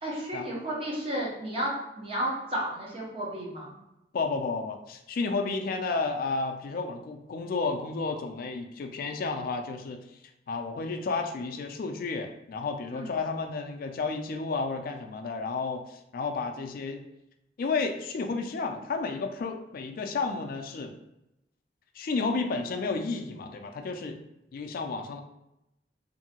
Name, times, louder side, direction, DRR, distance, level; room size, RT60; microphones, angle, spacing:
voice 1, 0.0-3.7 12.9-13.1, right 1 dB, 30° right, -4 dB, 0.8 m, -32 dB
voice 2, 4.1-10.0 10.5-17.0 17.6-20.9 21.9-24.2 24.5-25.2, left 4 dB, 50° left, 5 dB, 0.3 m, -32 dB
2.7 x 2.6 x 2.8 m, 0.89 s
head